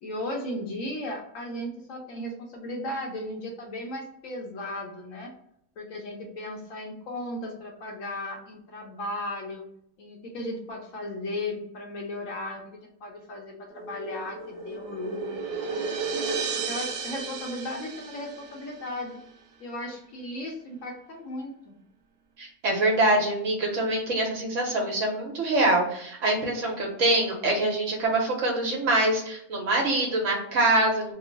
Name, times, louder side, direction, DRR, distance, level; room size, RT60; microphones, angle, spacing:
voice 1, 0.0-5.3 5.8-9.6 10.0-16.0 16.7-19.1 19.6-21.7, left 1 dB, 65° left, 0 dB, 1.0 m, -36 dB
sound 1, 13.7-18.9, right 5 dB, 85° right, 0.5 m, -33 dB
voice 2, 22.4-31.1, right 2 dB, 60° right, -1 dB, 1.0 m, -24 dB
2.9 x 2.0 x 3.7 m, 0.72 s
omnidirectional pair, 1.6 m